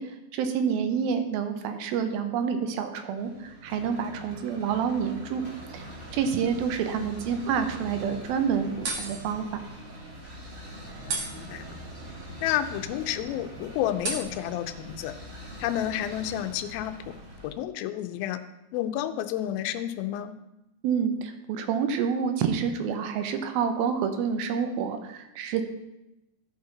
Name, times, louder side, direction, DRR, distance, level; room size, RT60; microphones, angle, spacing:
voice 1, 0.0-5.5 5.7-5.8 6.1-9.6 20.8-25.6, right 7 dB, 75° right, 7 dB, 2.5 m, -28 dB
sound 1, 3.2-17.5, right 1 dB, 40° right, 1.3 m, -44 dB
sound 2, 5.7-17.5, right 3 dB, 55° right, 2.1 m, -41 dB
voice 2, 11.1-11.8 12.4-15.1 15.6-17.0 17.4-18.4 18.7-20.4, left 12 dB, 80° left, 9 dB, 2.3 m, -30 dB
14.0 x 5.4 x 4.0 m, 0.93 s
omnidirectional pair, 4.5 m